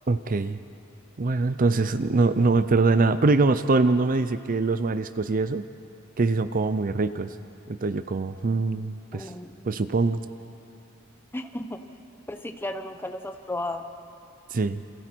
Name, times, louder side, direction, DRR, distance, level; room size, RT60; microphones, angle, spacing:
voice 1, 0.1-0.6 1.2-5.6 6.2-7.3 7.7-9.3 9.7-10.2 14.5-14.8, right 3 dB, 40° right, 12 dB, 0.5 m, -23 dB
voice 2, 9.1-9.5 11.3-11.8 12.3-13.9, left 1 dB, 10° left, 7 dB, 0.9 m, -34 dB
29.0 x 26.5 x 4.5 m, 2.8 s
head